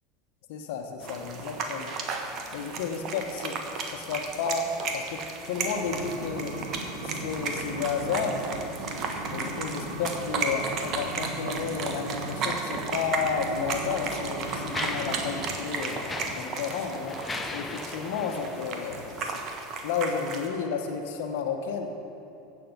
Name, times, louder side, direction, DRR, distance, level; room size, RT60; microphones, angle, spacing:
voice 1, 0.5-2.0 2.5-3.6 3.9-4.7 4.9-6.5 7.0-8.4 9.3-17.2 17.5-19.4 19.8-21.9, left 6 dB, 65° left, 3 dB, 1.2 m, -32 dB
sound 1, 1.0-20.5, right 4 dB, 45° right, 1.4 m, -35 dB
sound 2, 5.7-15.8, right 1 dB, 75° right, 1.9 m, -38 dB
Mechanisms, 13.1-13.2 14.0-19.7, left 3 dB, 15° left, 1.0 m, -38 dB
16.0 x 7.1 x 5.3 m, 2.8 s
hypercardioid pair, 80°, 0 cm